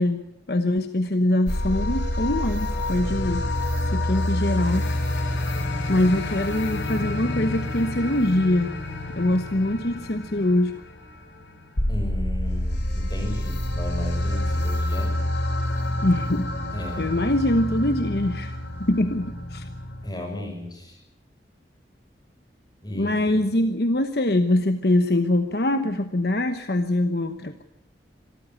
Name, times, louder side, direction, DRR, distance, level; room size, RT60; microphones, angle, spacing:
voice 1, 0.0-3.5 3.9-4.9 5.9-8.8 9.2-10.8 16.0-16.5 17.0-18.6 18.9-19.7 22.9-27.6, left 1 dB, 60° left, 9 dB, 1.1 m, -23 dB
sound 1, 1.5-20.1, left 1 dB, 80° left, 2.8 m, -28 dB
voice 2, 11.9-15.1 16.7-17.1 20.0-21.0 22.8-23.4, left 1 dB, 20° left, 3 dB, 6.0 m, -34 dB
26.0 x 14.0 x 8.8 m, 0.85 s
head